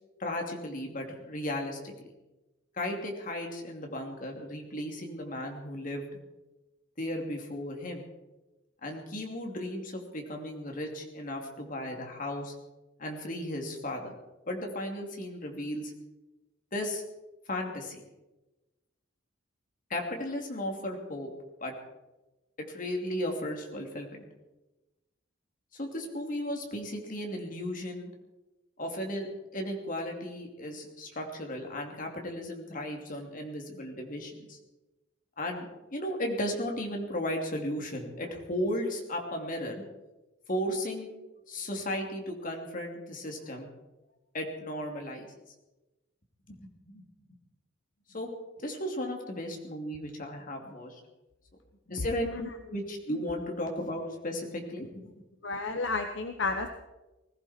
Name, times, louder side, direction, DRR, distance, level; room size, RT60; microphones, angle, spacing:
voice 1, 0.2-1.9 2.7-6.1 7.0-8.0 8.8-12.5 13.0-14.2 14.5-15.9 16.7-17.0 17.5-18.0 19.9-21.3 21.6-21.7 22.7-24.2 25.7-28.1 28.8-34.6 35.4-39.8 40.5-41.1 41.5-43.7 44.3-45.3 46.5-47.0 48.1-48.3 48.6-51.0 51.9-55.1, left 1 dB, 45° left, 2 dB, 2.8 m, -35 dB
voice 2, 55.4-56.7, left 3 dB, 65° left, 6 dB, 1.0 m, -31 dB
20.5 x 15.5 x 4.4 m, 1.1 s
head